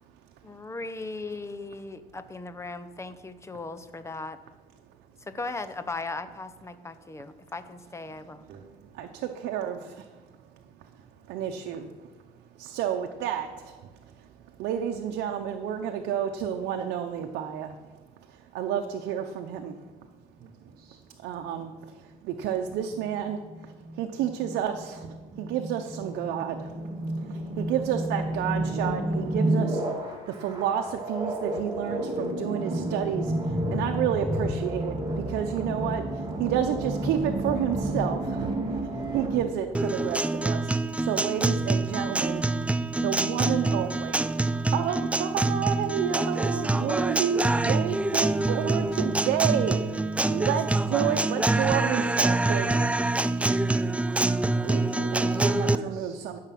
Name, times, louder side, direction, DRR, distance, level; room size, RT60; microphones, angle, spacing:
voice 1, 0.4-4.4 5.3-8.5, left 3 dB, 15° left, 11 dB, 0.8 m, -37 dB
voice 2, 8.5-10.2 10.7-10.9 11.3-12.1 12.6-14.3 14.6-17.7 18.2-19.8 21.2-42.8 43.0-52.9 55.1-56.4, right 9 dB, 85° right, 4 dB, 0.8 m, -31 dB
voice 3, 20.4-21.0 54.6-56.2, right 6 dB, 60° right, 1 dB, 1.2 m, -40 dB
sound 1, 23.0-39.4, right 1 dB, 25° right, 2.7 m, -31 dB
Guitar, 39.7-55.8, right 2 dB, 5° right, 0.3 m, -26 dB
13.0 x 6.5 x 5.9 m, 1.4 s
cardioid pair, 110°, 17 cm